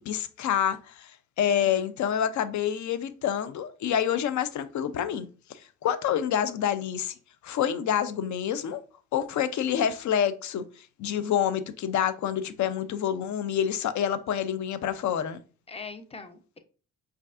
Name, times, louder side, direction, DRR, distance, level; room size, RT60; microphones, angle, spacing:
voice 1, 0.0-7.1 7.4-8.8 9.1-15.4, left 9 dB, 55° left, 0.6 m, -28 dB
voice 2, 1.5-1.9 15.7-16.6, left 4 dB, 15° left, 0.7 m, -42 dB
5.2 x 2.5 x 2.5 m
hypercardioid pair, 55°, 35 cm